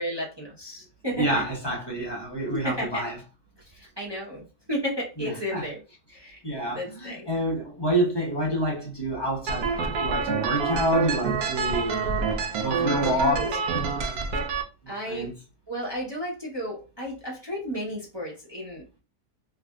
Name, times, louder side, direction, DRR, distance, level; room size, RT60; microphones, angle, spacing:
voice 1, 0.0-1.4 2.5-3.1 3.7-5.8 6.1-6.4 6.7-7.3 12.7-13.6 14.9-15.3 15.7-19.0, equal, 30° right, 0.4 m, -33 dB
voice 2, 1.1-3.1 5.2-5.7 6.4-12.1 12.6-13.4 13.7-14.3 15.1-15.3, right 1 dB, 20° left, 0.9 m, -28 dB
sound 1, 9.5-14.6, right 5 dB, 80° right, 1.0 m, -27 dB
3.2 x 2.5 x 2.2 m
omnidirectional pair, 1.6 m